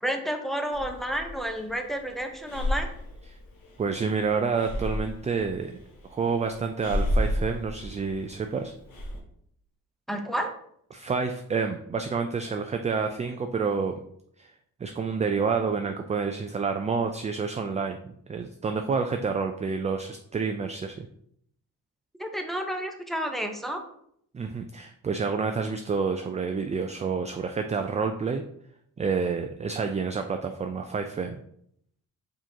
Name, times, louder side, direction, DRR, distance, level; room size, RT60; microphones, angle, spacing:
voice 1, 0.0-2.9 10.1-10.5 22.2-23.8, equal, ahead, 4 dB, 0.7 m, -30 dB
Breathing, 0.7-9.2, left 1 dB, 65° left, 1.2 m, -33 dB
voice 2, 3.8-5.8 6.1-8.7 10.9-13.9 14.4-14.5 14.8-21.1 24.3-28.4 29.0-31.4, right 5 dB, 20° right, 5 dB, 0.3 m, -29 dB
4.8 x 3.8 x 2.8 m, 0.69 s
supercardioid pair, 60°, 36 cm